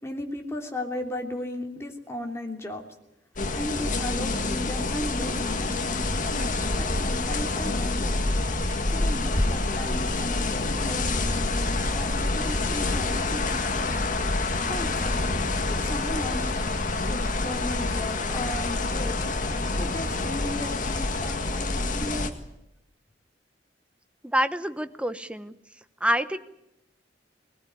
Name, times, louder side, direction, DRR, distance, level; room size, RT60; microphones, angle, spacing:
voice 1, 0.0-2.8 3.5-6.0 6.8-8.2 8.9-13.9 14.7-15.3 15.7-16.6 17.1-19.2 19.7-22.3, left 1 dB, 15° left, 2 dB, 3.1 m, -35 dB
sound 1, 3.4-22.3, left 2 dB, 45° left, 1.8 m, -27 dB
voice 2, 24.2-25.5 26.0-26.4, equal, 5° right, 11 dB, 0.9 m, -26 dB
20.5 x 19.5 x 9.5 m, 0.84 s
head